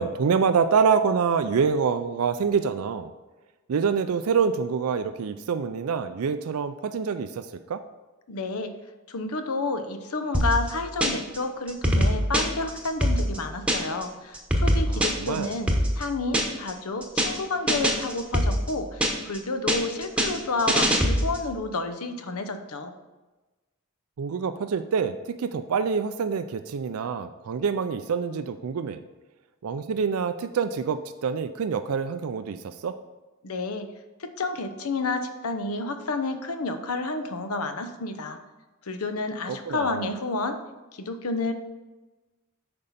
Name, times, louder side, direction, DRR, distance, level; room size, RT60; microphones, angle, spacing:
voice 1, 0.0-3.1 3.7-7.8 14.9-15.6 24.2-29.0 29.6-33.0 39.5-40.0, right 6 dB, 75° right, 10 dB, 0.4 m, -26 dB
voice 2, 8.3-8.7 9.1-22.9 33.4-33.9 34.2-38.4 38.8-40.6 40.9-41.5, left 3 dB, 85° left, 8 dB, 0.8 m, -30 dB
sound 1, 10.3-11.4 11.7-14.0 14.3-16.7 17.0-17.4 17.7-19.4 19.7-21.5, equal, 5° right, 1.0 m, -24 dB
8.7 x 5.5 x 4.1 m, 1.2 s
head